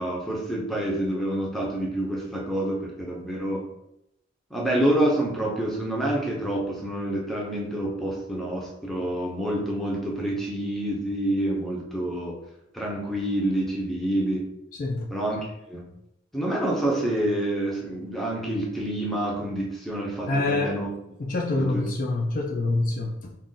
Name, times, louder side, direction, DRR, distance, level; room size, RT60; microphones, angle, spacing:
voice 1, 0.0-3.6 4.5-12.4 12.7-14.5 15.1-15.4 15.7-15.8 16.3-20.9 21.5-21.8, right 1 dB, ahead, -3 dB, 0.6 m, -27 dB
voice 2, 14.8-15.1 20.3-20.8 21.2-23.3, left 2 dB, 45° left, 1 dB, 0.4 m, -26 dB
2.5 x 2.4 x 3.7 m, 0.82 s
head